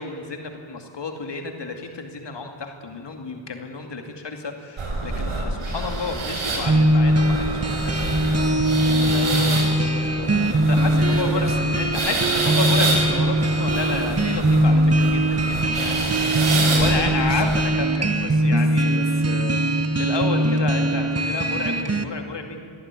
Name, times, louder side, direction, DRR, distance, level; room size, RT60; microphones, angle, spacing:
voice 1, 0.0-8.0 10.5-16.0 16.8-18.9 20.0-22.6, left 4 dB, 60° left, 4 dB, 2.5 m, -31 dB
sound 1, 4.8-17.7, right 2 dB, 85° right, 5.7 m, -27 dB
sound 2, 6.7-22.0, right 1 dB, 30° right, 1.6 m, -21 dB
voice 2, 8.8-10.4 11.0-11.6 16.7-17.3 18.5-19.9, left 3 dB, 25° left, 4 dB, 2.5 m, -35 dB
24.0 x 15.5 x 9.8 m, 2.8 s
wide cardioid pair, 90°, 48 cm